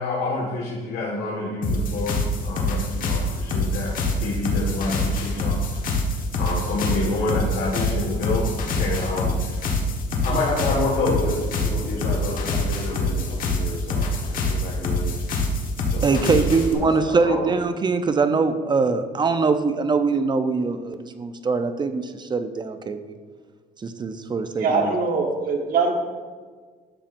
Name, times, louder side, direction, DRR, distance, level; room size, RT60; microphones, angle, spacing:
voice 1, 0.0-6.1 6.4-9.7 10.2-15.2 15.9-17.6, left 2 dB, 70° left, -3 dB, 1.7 m, -29 dB
sound 1, 1.6-16.7, left 1 dB, 55° left, 1.4 m, -25 dB
voice 2, 16.0-23.1 23.8-24.9, right 4 dB, 25° right, 9 dB, 0.6 m, -23 dB
voice 3, 24.6-25.9, right 4 dB, 55° right, 2 dB, 1.5 m, -22 dB
11.5 x 7.4 x 2.6 m, 1.5 s
cardioid pair, 110°, 17 cm